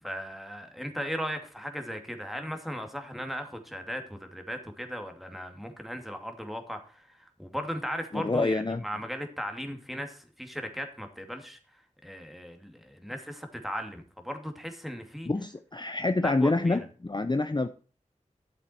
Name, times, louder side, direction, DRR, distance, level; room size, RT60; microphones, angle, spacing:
voice 1, 0.0-15.3 16.2-16.8, equal, ahead, 5 dB, 2.5 m, -37 dB
voice 2, 8.1-8.8 15.3-17.7, left 2 dB, 35° left, 10 dB, 0.7 m, -27 dB
12.5 x 7.5 x 4.4 m, 0.39 s
wide cardioid pair, 55°, 13 cm